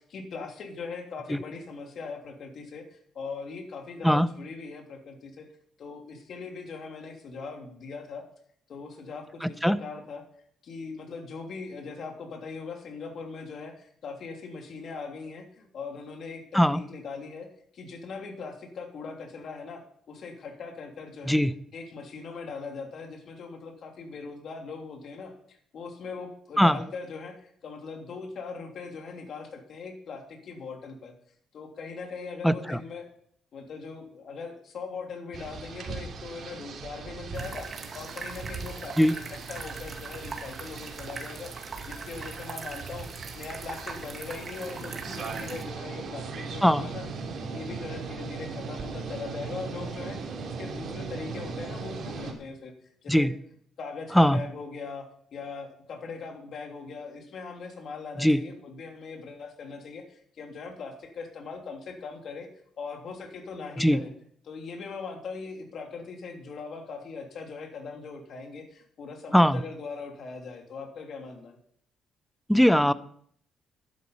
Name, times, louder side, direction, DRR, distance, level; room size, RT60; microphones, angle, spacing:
voice 1, 0.0-5.5 5.8-8.2 8.7-10.2 10.6-17.5 17.7-19.8 20.1-21.4 21.7-31.1 31.5-33.1 33.5-37.7 37.9-43.1 43.3-47.1 47.5-52.7 53.0-53.3 53.8-62.5 62.8-64.1 64.4-71.6, left 4 dB, 60° left, 3 dB, 3.0 m, -40 dB
voice 2, 9.4-9.8 16.5-16.8 21.3-21.5 26.6-26.8 32.4-32.8 39.0-39.1 46.6-46.8 53.1-53.3 54.1-54.4 58.2-58.4 63.8-64.0 69.3-69.6 72.5-72.9, equal, ahead, 15 dB, 0.7 m, -20 dB
sound 1, 35.3-52.3, right 5 dB, 60° right, 3.0 m, -39 dB
sound 2, 37.3-45.6, right 4 dB, 40° right, 2.3 m, -41 dB
12.0 x 10.5 x 5.5 m, 0.64 s
cardioid pair, 90°, 0 cm